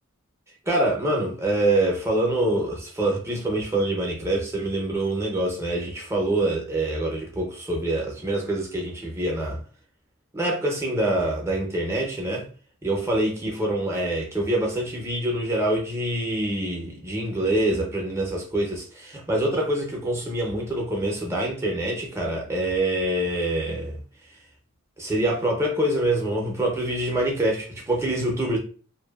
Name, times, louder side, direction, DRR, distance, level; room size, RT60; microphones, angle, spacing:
voice 1, 0.7-9.6 10.3-12.5 12.8-24.0 25.0-28.6, right 1 dB, 15° right, 0.6 m, -25 dB
2.6 x 2.3 x 2.3 m
head